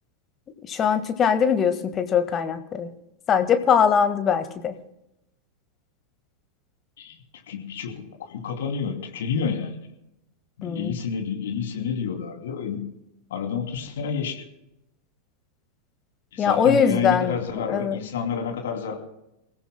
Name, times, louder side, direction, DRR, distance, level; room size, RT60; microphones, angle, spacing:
voice 1, 0.7-2.9 3.3-4.7 10.6-11.0 16.4-18.0, left 7 dB, 25° left, 9 dB, 1.6 m, -22 dB
voice 2, 7.5-9.8 10.6-12.8 13.3-14.5 16.3-18.9, left 6 dB, 60° left, 3 dB, 2.7 m, -29 dB
28.5 x 16.0 x 2.2 m, 0.86 s
figure-of-eight pair, 90°, 0 cm